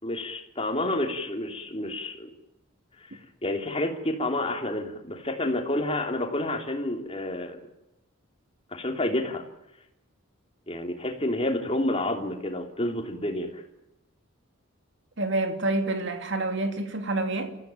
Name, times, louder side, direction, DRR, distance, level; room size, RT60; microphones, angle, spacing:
voice 1, 0.0-2.3 3.4-7.6 8.7-9.4 10.7-13.6, left 1 dB, 30° left, 3.3 m, -29 dB
voice 2, 15.2-17.6, right 2 dB, 60° right, 2.9 m, -28 dB
28.5 x 15.0 x 9.2 m
head